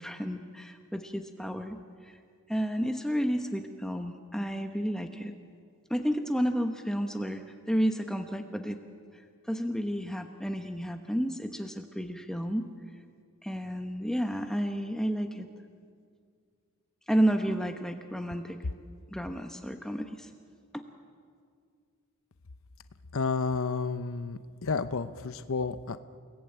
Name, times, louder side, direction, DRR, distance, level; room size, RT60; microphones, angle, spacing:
voice 1, 0.0-1.8 2.5-5.4 5.9-8.8 9.5-12.7 13.4-15.5 17.1-18.6 19.1-20.3, equal, 5° left, 5 dB, 1.0 m, -31 dB
voice 2, 23.1-26.0, left 4 dB, 65° left, 11 dB, 0.8 m, -31 dB
30.0 x 18.0 x 8.8 m, 2.1 s
head